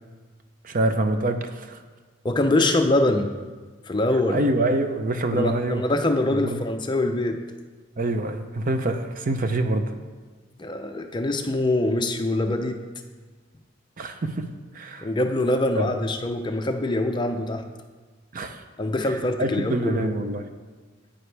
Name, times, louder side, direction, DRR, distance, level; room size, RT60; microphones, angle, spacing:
voice 1, 0.6-1.8 2.6-2.7 4.3-5.8 6.4-6.6 8.0-9.9 14.0-14.5 14.7-15.1 15.8-16.0 18.3-18.6 19.0-20.5, right 1 dB, 45° right, 7 dB, 0.6 m, -26 dB
voice 2, 2.2-3.3 3.9-4.4 5.3-7.4 10.6-12.8 15.0-17.6 18.8-20.1, left 2 dB, 25° left, 5 dB, 0.5 m, -24 dB
9.5 x 8.8 x 3.3 m, 1.4 s
head